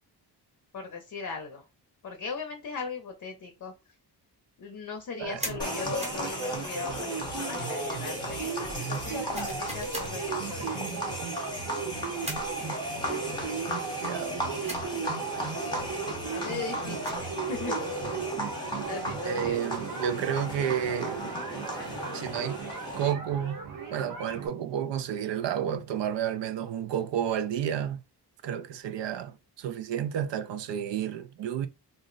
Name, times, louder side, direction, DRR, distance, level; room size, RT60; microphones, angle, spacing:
voice 1, 0.7-1.6 2.0-3.7 4.6-11.1 16.3-17.8 18.9-19.7, left 5 dB, 45° left, 0.6 m, -39 dB
sound 1, 5.2-24.5, right 6 dB, 50° right, 0.8 m, -37 dB
sound 2, 5.4-5.6 6.0-6.3 9.3-10.1 12.2-12.5 14.7-14.9 16.8-17.3, right 1 dB, 15° right, 0.8 m, -38 dB
sound 3, 5.6-23.1, equal, 10° left, 0.8 m, -35 dB
voice 2, 14.0-14.4 19.2-21.3 22.1-22.6 22.9-23.6 23.9-28.0 28.4-31.7, right 9 dB, 80° right, 0.5 m, -31 dB
2.5 x 2.0 x 3.8 m
wide cardioid pair, 150°, 42 cm